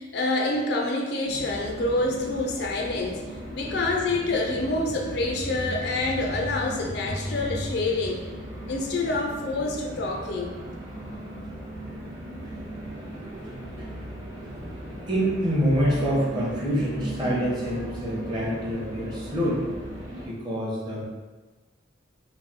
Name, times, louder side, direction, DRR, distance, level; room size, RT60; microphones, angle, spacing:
voice 1, 0.0-3.2 3.5-8.2 8.7-10.5, left 2 dB, 55° left, 0 dB, 0.5 m, -27 dB
sound 1, 1.2-20.3, right 1 dB, 65° right, 0.9 m, -38 dB
voice 2, 15.1-20.0 20.2-21.0, equal, 20° right, -5 dB, 0.8 m, -27 dB
3.2 x 2.6 x 4.0 m, 1.2 s
head